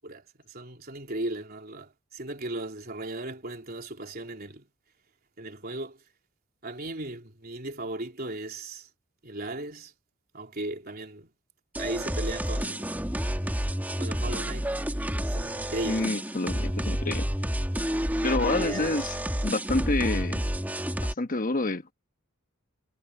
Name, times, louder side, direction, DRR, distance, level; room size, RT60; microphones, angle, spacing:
voice 1, 0.0-4.7 5.4-6.0 6.6-8.9 9.2-9.9 10.3-11.3 11.8-13.0 14.0-14.7 15.3-16.1 16.4-16.5 18.4-19.0, right 2 dB, 45° right, 3.6 m, -36 dB
sound 1, 11.7-21.1, equal, 10° right, 2.5 m, -30 dB
voice 2, 15.8-17.2 18.2-19.1 19.4-20.4 21.0-21.9, left 2 dB, 40° left, 1.2 m, -28 dB
head